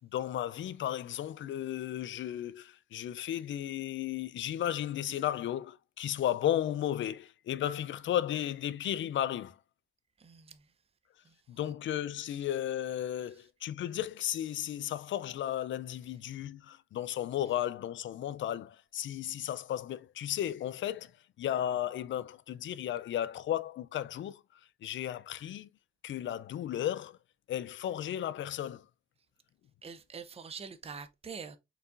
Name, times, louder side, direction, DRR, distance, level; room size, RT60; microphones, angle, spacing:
voice 1, 0.1-9.6 11.5-21.1 21.4-24.4 24.8-25.7 26.0-27.2 27.5-28.8, left 11 dB, 65° left, 0.4 m, -34 dB
voice 2, 10.2-10.7 11.2-11.4 11.6-11.7 13.3-13.4 29.8-31.6, right 6 dB, 30° right, 0.6 m, -45 dB
4.5 x 3.9 x 2.5 m
cardioid pair, 75°, 21 cm